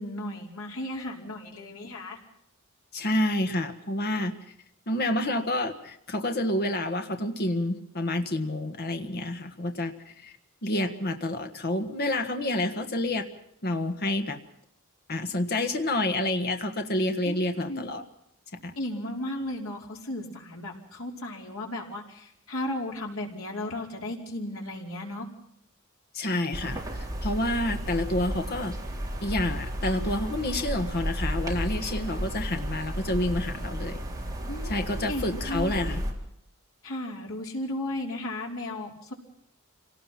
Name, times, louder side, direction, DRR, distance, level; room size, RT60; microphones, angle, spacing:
voice 1, 0.0-2.2 17.3-17.4 17.6-17.9 18.7-25.3 34.5-35.7 36.8-39.1, left 1 dB, 70° left, 0 dB, 5.1 m, -35 dB
voice 2, 2.9-4.3 4.9-10.3 10.6-13.3 13.6-14.4 15.1-18.0 18.6-18.7 26.1-26.8 27.2-28.7 29.2-34.0 34.6-36.0, left 1 dB, 50° left, 6 dB, 1.6 m, -28 dB
sound 1, 26.5-36.1, equal, 15° right, 4.1 m, -33 dB
27.0 x 18.5 x 5.9 m, 0.74 s
head